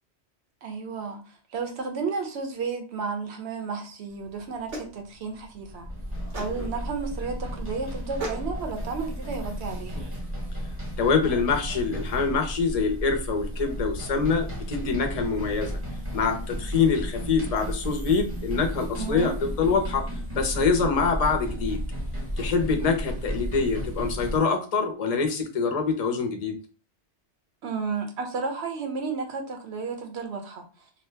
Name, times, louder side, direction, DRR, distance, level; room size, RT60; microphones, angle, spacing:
voice 1, 0.6-5.9 6.3-10.1 18.9-19.3 27.6-30.9, right 4 dB, 70° right, 4 dB, 0.9 m, -33 dB
sound 1, 4.1-10.2, right 2 dB, 85° right, 1.2 m, -41 dB
sound 2, 5.5-24.4, equal, 15° right, 0.7 m, -33 dB
voice 2, 11.0-15.8 16.1-20.1 20.3-21.8 22.4-26.5, left 5 dB, 45° left, 5 dB, 0.5 m, -25 dB
2.7 x 2.1 x 3.2 m, 0.35 s
omnidirectional pair, 1.2 m